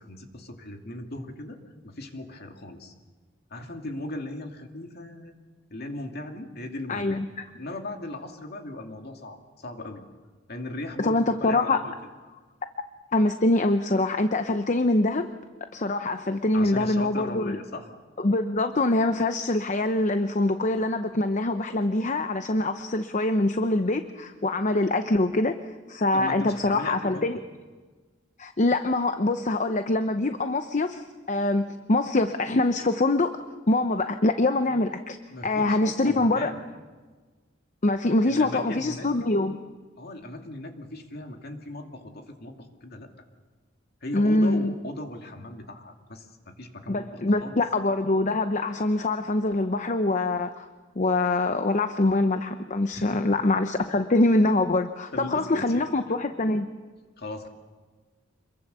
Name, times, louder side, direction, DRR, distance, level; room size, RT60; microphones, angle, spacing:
voice 1, 0.0-1.6 1.8-2.9 3.5-5.3 5.7-7.2 7.6-10.0 10.5-11.9 16.5-17.9 26.1-27.3 35.3-36.6 38.2-39.1 40.0-42.6 42.8-43.1 44.0-47.1 47.4-47.6 52.9-53.2 55.1-56.2 57.2-57.5, left 2 dB, 55° left, 4 dB, 2.5 m, -38 dB
voice 2, 6.9-7.2 11.0-11.8 13.1-15.3 15.7-17.6 18.2-25.6 25.9-27.4 28.4-33.4 33.7-35.2 35.4-36.5 37.8-39.6 44.1-44.7 46.9-50.7 51.0-56.7, left 2 dB, 40° left, 8 dB, 0.8 m, -24 dB
27.0 x 22.5 x 6.9 m, 1.4 s
head